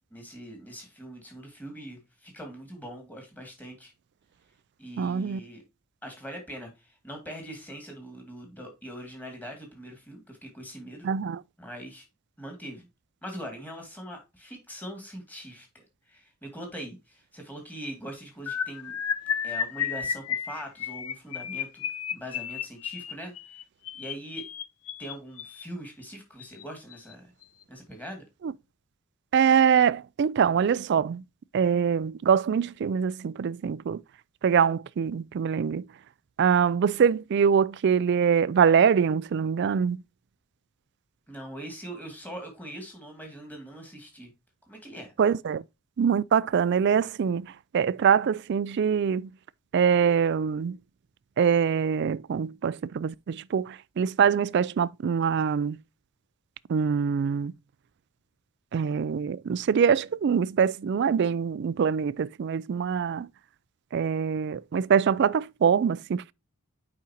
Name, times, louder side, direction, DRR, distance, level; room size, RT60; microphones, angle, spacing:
voice 1, 0.1-3.9 4.8-5.6 6.0-11.1 11.6-12.1 12.4-12.9 13.2-19.0 19.4-21.9 22.1-23.6 23.9-24.4 25.0-27.3 27.7-28.2 41.3-44.3 44.7-45.1, right 1 dB, 10° left, 2.1 m, -42 dB
voice 2, 5.0-5.4 11.0-11.4 28.4-28.5 29.3-31.2 31.5-34.0 34.4-35.8 36.4-40.0 45.2-45.6 46.0-49.3 49.7-50.8 51.4-55.8 56.7-57.5 58.7-63.3 63.9-66.3, right 7 dB, 50° right, 0.3 m, -24 dB
sound 1, 18.5-25.6 26.4-26.6 26.9-27.1 27.4-27.6, left 8 dB, 75° left, 0.6 m, -33 dB
8.4 x 5.1 x 2.8 m
head